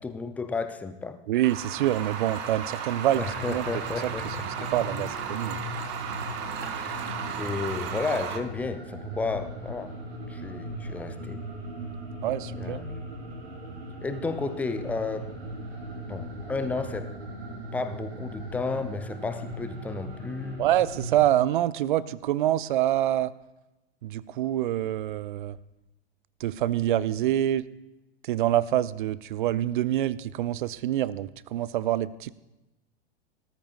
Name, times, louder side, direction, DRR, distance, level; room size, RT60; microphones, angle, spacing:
voice 1, 0.0-1.2 3.2-4.7 6.6-7.0 7.4-9.9 10.3-11.4 12.6-13.0 14.0-15.3 16.1-17.1 17.7-20.7, left 4 dB, 5° left, 10 dB, 0.4 m, -32 dB
voice 2, 1.3-3.7 4.0-5.6 12.2-12.8 20.6-23.3 24.0-25.6 26.4-27.7 28.2-32.3, right 13 dB, 50° right, 19 dB, 0.5 m, -26 dB
sound 1, 1.4-8.4, right 7 dB, 35° right, 1.1 m, -35 dB
sound 2, 3.1-21.2, right 1 dB, 65° right, 3.6 m, -38 dB
18.0 x 13.5 x 2.4 m, 0.98 s
figure-of-eight pair, 100°, 34 cm